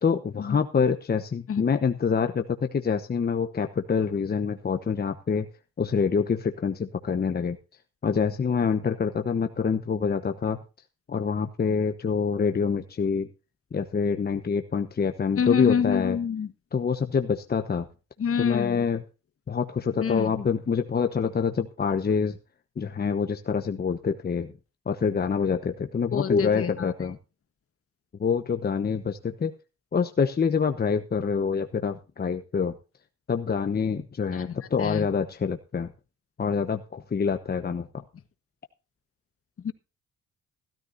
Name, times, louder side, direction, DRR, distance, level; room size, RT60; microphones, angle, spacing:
voice 1, 0.0-5.5 5.8-7.6 8.0-10.6 11.1-13.3 13.7-16.2 16.7-17.9 18.4-19.0 19.5-22.4 22.8-24.5 24.9-27.2 28.2-29.5 29.9-32.8 33.3-35.9 36.4-38.0, left 6 dB, 30° left, 6 dB, 1.1 m, -26 dB
voice 2, 15.4-16.5 18.2-18.8 20.0-20.3 26.1-26.9 34.3-35.1 39.6-39.7, left 7 dB, 50° left, 10 dB, 1.6 m, -27 dB
16.0 x 13.0 x 2.7 m, 0.32 s
cardioid pair, 90°, 30 cm